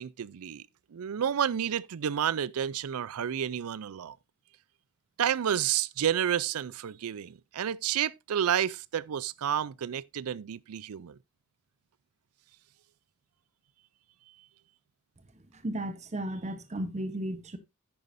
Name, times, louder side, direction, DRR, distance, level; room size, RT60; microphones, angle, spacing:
voice 1, 0.0-4.2 5.2-11.2, right 9 dB, 75° right, 0.4 m, -30 dB
voice 2, 15.5-17.6, right 1 dB, 30° right, 0.9 m, -34 dB
10.5 x 9.4 x 2.6 m
head